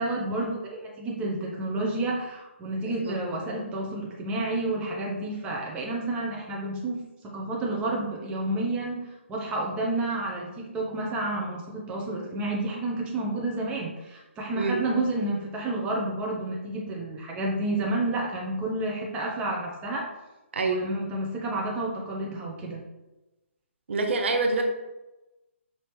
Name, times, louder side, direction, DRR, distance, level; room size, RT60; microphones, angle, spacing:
voice 1, 0.0-20.1 20.6-22.8, right 2 dB, 15° right, -2 dB, 0.7 m, -30 dB
voice 2, 23.9-24.6, right 3 dB, 65° right, 4 dB, 0.6 m, -26 dB
5.2 x 2.7 x 3.1 m, 1.0 s
figure-of-eight pair, 140°, 7 cm